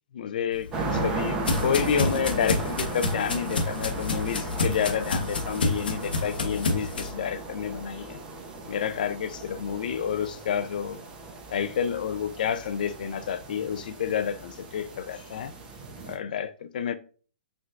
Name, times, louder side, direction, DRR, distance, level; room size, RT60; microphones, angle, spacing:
voice 1, 0.1-8.2 8.7-11.0 11.5-15.5 16.0-17.0, left 8 dB, 60° left, 0.3 m, -29 dB
sound 1, 0.5-7.1, left 3 dB, 80° left, 0.8 m, -29 dB
sound 2, 0.7-16.1, right 3 dB, 20° right, 0.6 m, -36 dB
4.5 x 2.4 x 2.4 m
hypercardioid pair, 130°, 5 cm